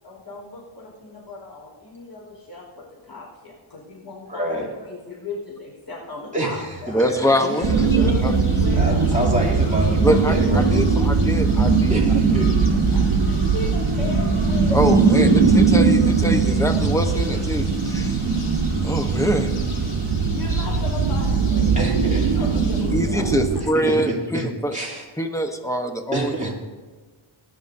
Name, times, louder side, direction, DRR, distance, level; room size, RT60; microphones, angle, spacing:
voice 1, 0.0-7.0 7.4-9.6 10.8-10.9 12.9-14.8 15.1-15.8 17.3-17.4 20.0-22.0 22.3-23.2, left 2 dB, 55° left, -3 dB, 4.4 m, -36 dB
voice 2, 4.3-4.7 6.3-7.1 8.8-10.8 11.9-12.7 21.8-22.3 23.7-24.5 24.7-25.0 26.1-26.5, right 1 dB, 15° right, -3 dB, 2.8 m, -27 dB
voice 3, 6.9-8.3 10.0-12.0 12.3-12.5 14.7-18.2 18.8-19.5 20.5-20.6 22.9-24.8 25.2-26.5, equal, 5° left, 5 dB, 0.9 m, -24 dB
sound 1, 7.2-22.9, left 3 dB, 80° left, 2.0 m, -41 dB
sound 2, 7.6-23.6, right 4 dB, 70° right, 1.2 m, -19 dB
19.0 x 10.5 x 2.7 m, 1.4 s
wide cardioid pair, 110°, 50 cm